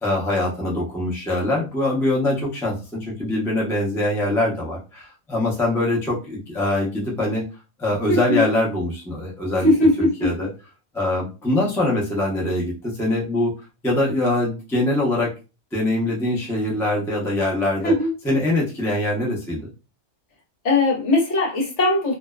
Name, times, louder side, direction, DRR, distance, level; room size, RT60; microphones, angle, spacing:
voice 1, 0.0-7.4 7.8-9.7 10.0-10.5 10.9-13.5 13.8-15.3 15.7-17.9 18.2-19.7, left 1 dB, 5° left, 0.3 m, -23 dB
voice 2, 8.1-8.4 9.6-10.3 17.8-18.1 20.6-22.2, left 2 dB, 60° left, 1.1 m, -19 dB
2.6 x 2.1 x 2.2 m
omnidirectional pair, 1.4 m